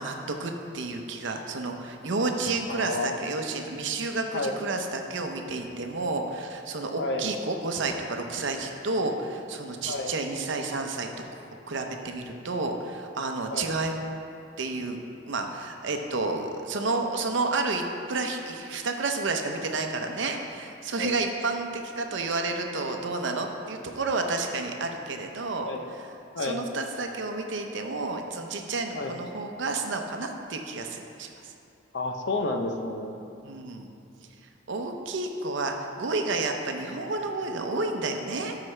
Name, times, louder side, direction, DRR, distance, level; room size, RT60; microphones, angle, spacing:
voice 1, 0.0-11.1 11.7-14.0 14.6-15.0 15.2-25.7 26.4-31.5 33.4-33.9 34.7-38.6, right 3 dB, 75° right, 4 dB, 0.7 m, -30 dB
voice 2, 2.7-3.2 4.3-4.6 7.0-7.3 9.9-10.1 13.5-13.7 20.9-21.1 25.6-25.9 26.3-26.6 28.9-29.2 31.9-33.2, left 2 dB, 65° left, 4 dB, 0.6 m, -30 dB
12.5 x 4.8 x 3.2 m, 2.6 s
head